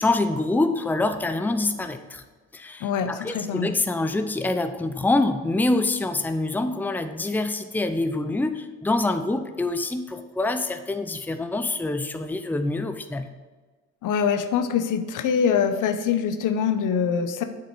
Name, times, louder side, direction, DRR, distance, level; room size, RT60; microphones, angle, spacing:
voice 1, 0.0-2.2 2.5-13.3, left 2 dB, 5° left, 8 dB, 0.6 m, -25 dB
voice 2, 2.8-3.7 14.0-17.4, left 7 dB, 70° left, 9 dB, 0.8 m, -24 dB
8.1 x 7.0 x 4.6 m, 1.4 s
cardioid pair, 90°, 33 cm